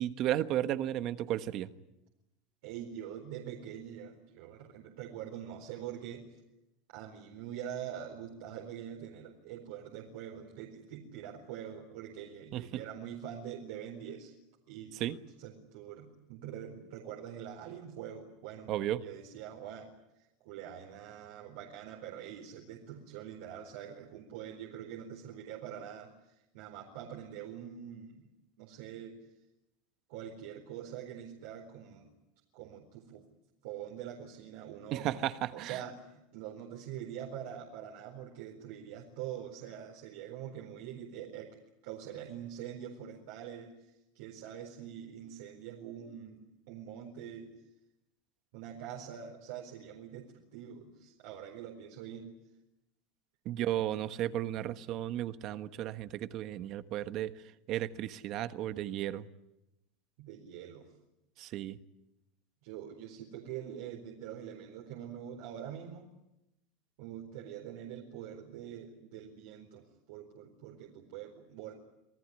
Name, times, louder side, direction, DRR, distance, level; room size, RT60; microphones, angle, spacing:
voice 1, 0.0-1.7 12.5-12.8 15.0-15.2 18.7-19.0 34.9-35.8 53.4-57.3 57.7-59.3 61.4-61.8, right 12 dB, 45° right, 12 dB, 1.3 m, -34 dB
voice 2, 2.6-6.2 6.9-14.3 14.7-18.7 19.0-28.3 28.6-29.2 30.1-32.1 32.5-33.2 33.6-41.6 41.8-47.5 48.5-52.3 60.2-60.9 62.6-66.1 67.0-71.7, right 9 dB, 70° right, 1 dB, 4.3 m, -44 dB
27.5 x 18.5 x 9.8 m, 0.91 s
supercardioid pair, 145°, 0 cm